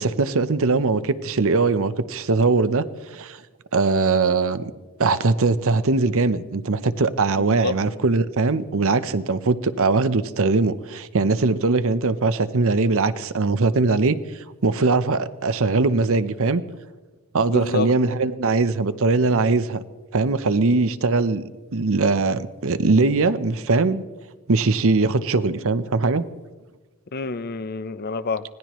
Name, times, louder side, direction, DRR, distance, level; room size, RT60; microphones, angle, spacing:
voice 1, 0.0-3.4 3.7-4.7 5.0-16.6 17.3-19.8 20.1-24.0 24.5-26.2, right 3 dB, 65° right, 0.8 m, -21 dB
voice 2, 17.5-17.9 27.1-28.4, left 4 dB, 45° left, 0.7 m, -27 dB
25.0 x 18.5 x 3.1 m
head